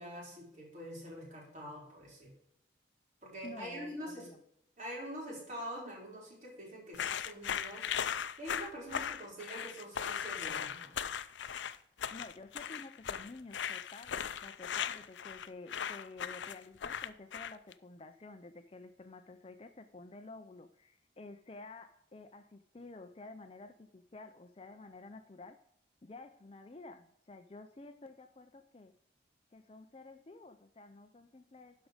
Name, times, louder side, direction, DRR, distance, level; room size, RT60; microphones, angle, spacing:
voice 1, 0.0-2.3 3.2-4.3 4.8-10.9, equal, 40° right, -3 dB, 4.2 m, -45 dB
voice 2, 3.4-4.4 12.1-25.6 26.0-28.9 29.5-31.9, left 3 dB, 30° left, 8 dB, 0.5 m, -51 dB
sound 1, 6.9-17.7, left 8 dB, 85° left, 0.5 m, -38 dB
12.5 x 5.2 x 5.0 m, 0.75 s
head